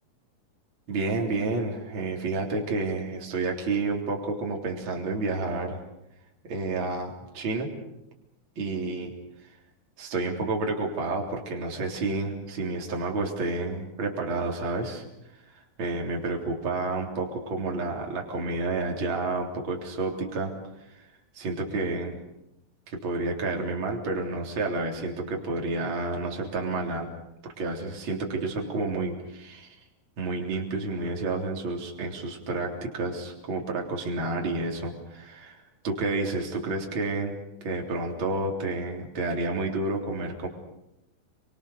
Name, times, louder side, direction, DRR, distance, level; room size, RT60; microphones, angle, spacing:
voice 1, 0.9-5.8 6.5-7.7 8.6-9.1 10.0-15.0 15.5-20.5 20.9-21.0 21.3-22.2 22.9-27.1 27.6-29.8 30.2-37.3 37.6-40.5, right 3 dB, 30° right, 0 dB, 3.9 m, -30 dB
29.5 x 24.5 x 6.8 m, 0.85 s
omnidirectional pair, 4.6 m